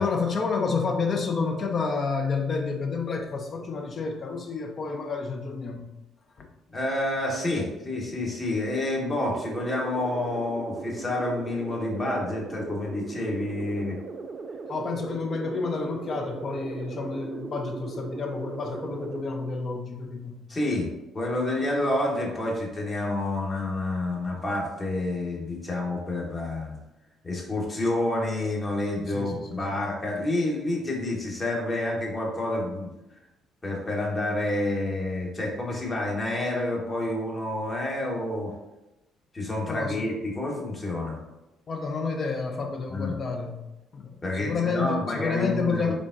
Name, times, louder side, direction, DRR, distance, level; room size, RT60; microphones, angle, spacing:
voice 1, 0.0-5.8 6.4-6.5 14.7-20.4 29.1-29.7 39.7-40.1 41.7-43.6 43.9-44.1 44.4-46.0, left 4 dB, 45° left, 3 dB, 0.6 m, -29 dB
voice 2, 6.7-14.0 20.5-20.9 21.1-26.7 27.2-32.9 33.6-38.5 39.3-41.2 42.9-43.2 44.2-46.0, left 1 dB, 30° left, -2 dB, 1.2 m, -29 dB
sound 1, 9.2-19.2, right 4 dB, 40° right, 0.3 m, -38 dB
3.7 x 3.6 x 2.5 m, 0.97 s
figure-of-eight pair, 50°, 0 cm